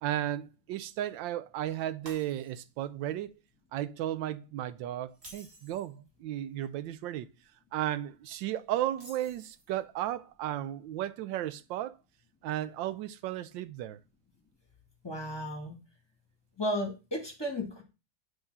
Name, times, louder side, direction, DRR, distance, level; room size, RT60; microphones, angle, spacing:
voice 1, 0.0-3.3 3.7-7.3 7.7-12.0 12.4-14.0, right 12 dB, 75° right, 1.2 m, -34 dB
Shatter, 2.1-2.8 3.3-3.5 5.1-5.9 8.9-9.8, right 1 dB, 30° right, 2.5 m, -52 dB
voice 2, 15.0-15.7 16.6-17.8, equal, 15° left, 1.7 m, -34 dB
7.9 x 3.7 x 5.4 m
omnidirectional pair, 2.2 m